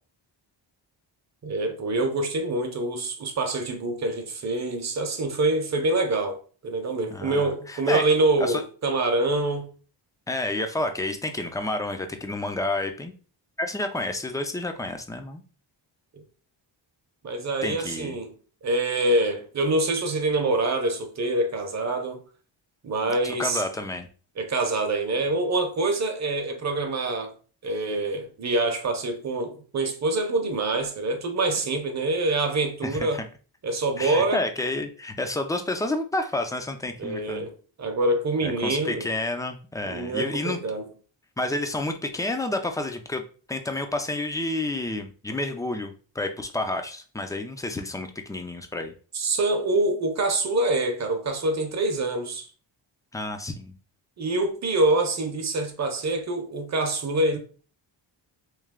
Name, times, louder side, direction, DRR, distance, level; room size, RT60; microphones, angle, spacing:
voice 1, 1.4-9.7 16.1-16.2 17.2-18.3 18.6-22.2 22.8-23.6 24.4-27.3 27.6-33.2 33.6-34.4 37.0-37.5 37.8-39.1 39.8-40.9 49.1-52.5 54.2-57.4, right 2 dB, 35° right, 0.7 m, -25 dB
voice 2, 7.1-8.1 8.4-8.6 10.3-13.1 13.6-15.4 17.6-18.2 23.2-24.1 32.8-33.2 34.0-37.4 38.4-40.6 41.4-43.2 43.5-48.9 53.1-53.7, left 2 dB, 10° left, 0.3 m, -30 dB
3.2 x 3.2 x 3.6 m
wide cardioid pair, 140°, 45 cm